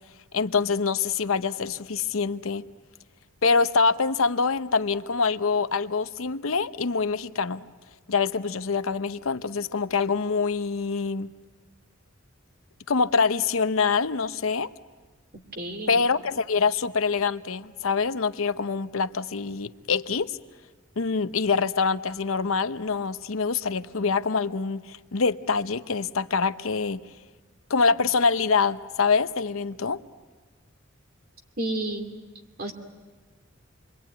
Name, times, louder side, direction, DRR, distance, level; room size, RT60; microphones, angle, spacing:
voice 1, 0.3-2.6 3.4-7.6 8.1-11.3 12.9-14.7 15.9-20.4 21.0-27.0 27.7-30.0, left 5 dB, 80° left, 0.8 m, -25 dB
voice 2, 15.3-16.0 31.6-32.1 32.6-32.7, right 1 dB, 45° right, 2.7 m, -31 dB
28.0 x 22.5 x 9.2 m
head